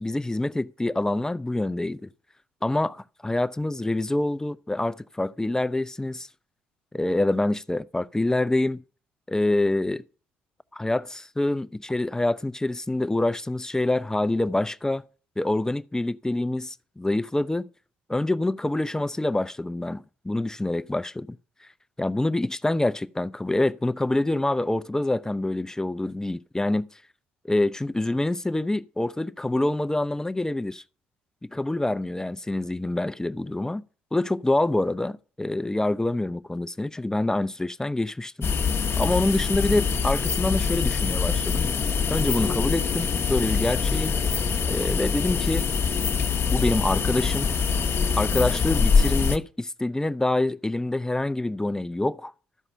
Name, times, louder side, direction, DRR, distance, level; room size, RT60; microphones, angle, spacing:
voice 1, 0.0-2.1 2.6-6.3 6.9-8.8 9.3-10.0 10.7-15.0 15.4-17.7 18.1-21.4 22.0-26.9 27.4-30.8 31.5-33.8 34.1-38.5 39.0-41.7 42.1-44.2 44.7-45.7 46.5-47.5 48.1-52.3, left 2 dB, 10° left, 0.5 m, -26 dB
sound 1, 38.4-49.4, left 6 dB, 45° left, 0.8 m, -24 dB
13.0 x 4.9 x 5.5 m
hypercardioid pair, 55°, 6 cm